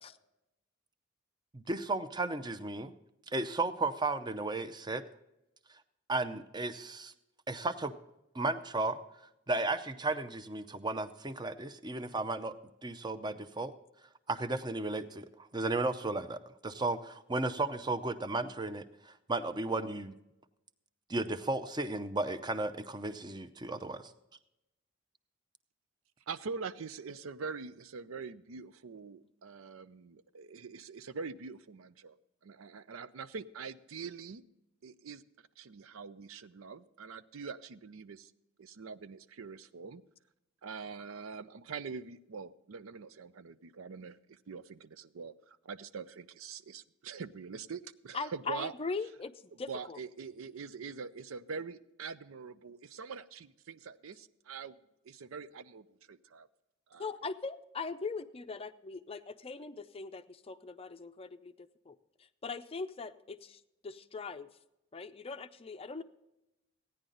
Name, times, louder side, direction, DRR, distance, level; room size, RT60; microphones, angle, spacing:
voice 1, 1.5-2.9 3.3-5.0 6.1-7.1 7.5-7.9 8.3-9.0 9.5-12.5 12.8-13.7 14.3-20.1 21.1-24.0, right 2 dB, 20° right, 11 dB, 0.6 m, -34 dB
voice 2, 26.3-32.2 32.4-34.4 34.8-35.2 35.6-38.3 38.6-40.0 40.6-48.7 49.7-54.7 55.0-56.5 56.9-57.1, right 5 dB, 85° right, 13 dB, 0.5 m, -44 dB
voice 3, 48.1-50.0 57.0-61.9 62.4-64.5 64.9-66.0, left 4 dB, 30° left, 10 dB, 0.5 m, -40 dB
15.5 x 10.0 x 3.9 m, 0.90 s
head